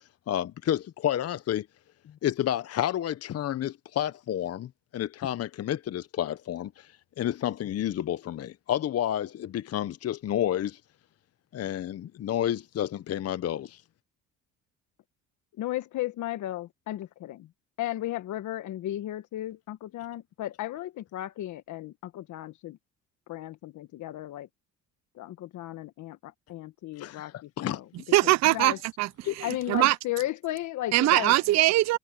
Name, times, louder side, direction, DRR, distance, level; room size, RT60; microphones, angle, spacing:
voice 1, 0.3-1.7 2.2-10.8 11.5-13.8 27.0-27.8 29.2-29.3, left 11 dB, 50° left, 0.9 m, -30 dB
voice 2, 15.6-17.5 17.8-22.8 23.3-24.5 25.1-27.8 28.2-28.8 29.4-31.4, left 14 dB, 65° left, 1.4 m, -35 dB
voice 3, 28.1-30.0 30.9-32.0, right 17 dB, 55° right, 0.6 m, -22 dB
supercardioid pair, 70°, 32 cm